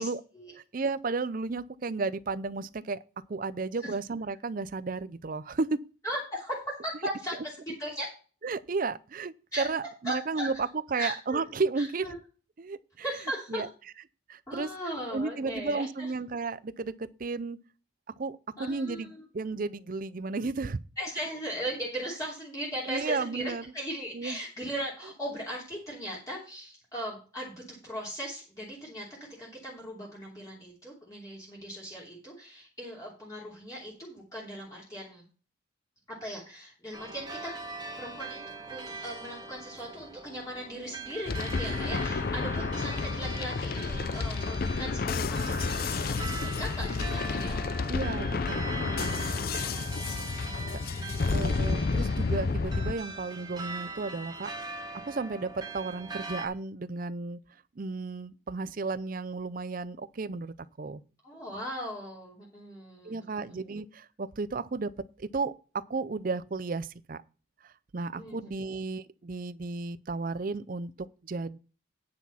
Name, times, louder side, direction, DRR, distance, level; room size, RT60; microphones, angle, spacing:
voice 1, 0.6-3.0 3.3-5.8 8.4-12.1 12.6-13.0 13.5-13.7 14.3-14.7 15.1-17.6 18.2-20.8 22.9-23.6 24.1-24.4 47.9-49.3 51.3-57.4 57.8-61.0 63.0-64.9 65.2-65.5 65.9-67.2 67.9-71.6, right 3 dB, 45° right, 0.5 m, -33 dB
voice 2, 6.0-8.1 9.5-9.7 10.0-10.5 10.9-11.4 11.8-12.1 13.0-13.6 14.5-16.1 18.6-19.2 21.0-29.1 29.4-35.2 36.2-37.5 38.0-38.4 38.7-47.8 49.4-49.9 50.3-51.8 61.2-63.5 68.1-68.5, equal, 15° left, 2.8 m, -38 dB
sound 1, 36.9-56.5, right 3 dB, 20° right, 1.5 m, -41 dB
sound 2, 41.3-52.9, left 4 dB, 45° left, 0.5 m, -30 dB
9.8 x 6.1 x 5.6 m
head